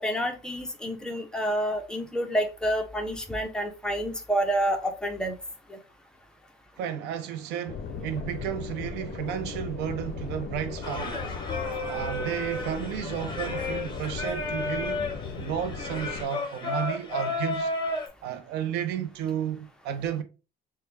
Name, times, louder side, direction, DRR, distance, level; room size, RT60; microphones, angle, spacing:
voice 1, 0.0-5.4 5.7-5.8, right 1 dB, 5° left, 0.6 m, -28 dB
voice 2, 6.8-11.3 11.9-15.1 15.4-17.7 18.2-20.2, right 9 dB, 90° right, 0.5 m, -32 dB
sound 1, 7.7-16.3, left 5 dB, 55° left, 0.5 m, -37 dB
Singing, 10.8-18.1, left 2 dB, 25° left, 0.9 m, -32 dB
3.2 x 2.2 x 3.2 m
cardioid pair, 110°, 17 cm